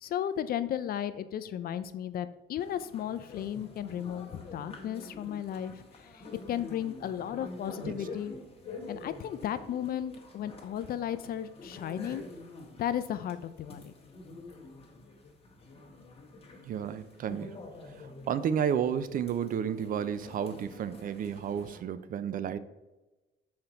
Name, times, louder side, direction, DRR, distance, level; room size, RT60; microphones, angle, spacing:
voice 1, 0.0-6.2 6.5-8.3 8.9-12.2 12.8-13.9, left 10 dB, 50° left, 12 dB, 0.4 m, -35 dB
sound 1, 2.6-21.8, left 3 dB, 30° left, 1.3 m, -47 dB
voice 2, 16.6-17.6 18.3-22.6, right 8 dB, 45° right, 13 dB, 0.4 m, -32 dB
5.7 x 4.3 x 3.9 m, 1.1 s
cardioid pair, 105°, 20 cm